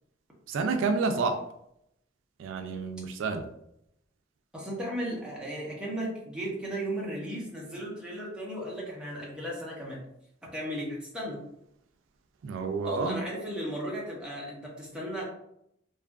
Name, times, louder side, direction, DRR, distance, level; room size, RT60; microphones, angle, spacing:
voice 1, 0.5-1.4 2.4-3.4 12.4-13.2, right 4 dB, 90° right, 6 dB, 0.3 m, -29 dB
voice 2, 4.5-10.0 10.5-11.4 12.8-15.2, equal, 5° right, -4 dB, 0.7 m, -35 dB
2.6 x 2.4 x 2.3 m, 0.77 s
head